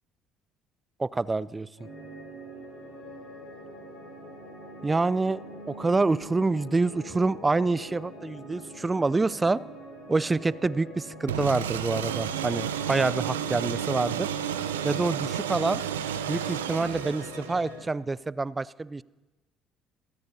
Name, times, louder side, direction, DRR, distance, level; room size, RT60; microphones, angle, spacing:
voice 1, 1.0-1.7 4.8-5.4 5.7-9.6 10.1-14.3 14.8-15.8 16.3-19.0, right 3 dB, 20° right, 21 dB, 0.5 m, -27 dB
sound 1, 1.8-17.8, equal, 75° left, 7.4 m, -44 dB
sound 2, 11.3-17.8, right 9 dB, 80° right, 0.7 m, -31 dB
27.0 x 18.0 x 2.8 m, 1.1 s
figure-of-eight pair, 55°, 0 cm